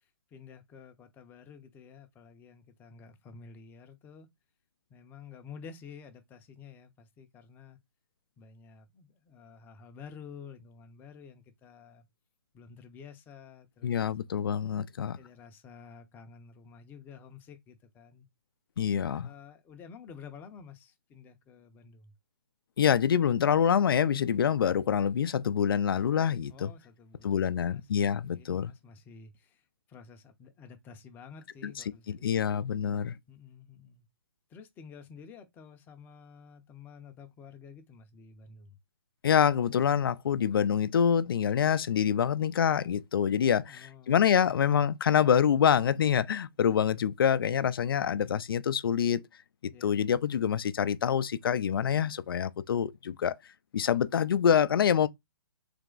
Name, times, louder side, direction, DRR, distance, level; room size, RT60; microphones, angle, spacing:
voice 1, 0.3-4.3 4.9-7.8 8.4-12.1 12.5-13.9 15.2-18.3 19.2-22.1 26.5-27.8 28.4-29.6 29.9-32.2 33.3-34.1 34.5-38.8 43.7-44.1 49.7-49.9, left 6 dB, 15° left, 0.6 m, -50 dB
voice 2, 13.8-15.2 18.8-19.3 22.8-26.7 27.2-28.7 31.6-31.7 32.1-33.2 39.2-49.3 49.6-53.4 53.7-55.1, left 8 dB, 65° left, 0.4 m, -26 dB
3.4 x 3.0 x 3.7 m
hypercardioid pair, 145°, 13 cm